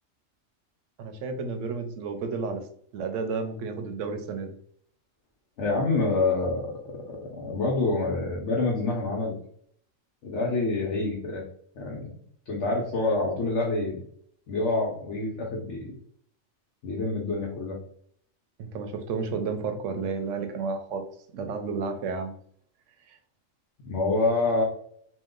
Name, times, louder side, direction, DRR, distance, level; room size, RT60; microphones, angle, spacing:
voice 1, 1.0-2.7 2.9-4.6 18.6-22.4 23.1-23.2, right 4 dB, 75° right, 6 dB, 0.9 m, -32 dB
voice 2, 5.6-9.4 10.2-11.4 11.7-12.2 12.5-14.0 14.5-16.0 16.8-17.8 23.8-24.6, left 3 dB, 65° left, -2 dB, 1.0 m, -27 dB
3.0 x 2.2 x 3.6 m, 0.62 s
omnidirectional pair, 1.4 m